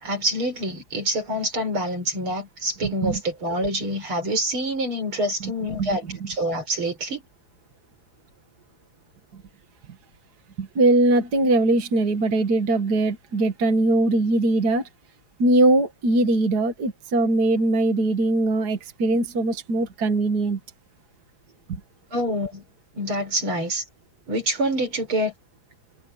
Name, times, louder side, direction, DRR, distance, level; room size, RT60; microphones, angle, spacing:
voice 1, 0.0-7.2 22.1-22.6 22.9-23.8 24.3-25.3, equal, 75° right, 6.4 m, -26 dB
voice 2, 2.8-3.2 5.8-6.2 10.6-14.8 15.4-20.6 21.7-21.8, right 2 dB, 50° right, 2.2 m, -21 dB
omnidirectional pair, 2.3 m